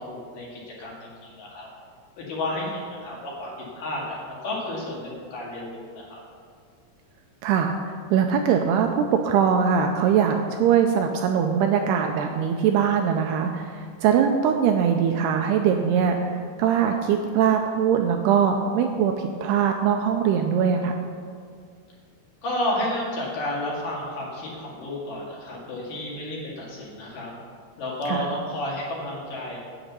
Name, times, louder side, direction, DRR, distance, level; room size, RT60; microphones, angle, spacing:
voice 1, 0.0-1.7 2.2-6.2 22.4-27.3 27.8-29.6, left 1 dB, 55° left, -4 dB, 3.1 m, -31 dB
voice 2, 7.4-21.0 28.1-28.3, right 7 dB, 85° right, 4 dB, 2.4 m, -22 dB
8.9 x 8.4 x 6.7 m, 2.1 s
omnidirectional pair, 5.2 m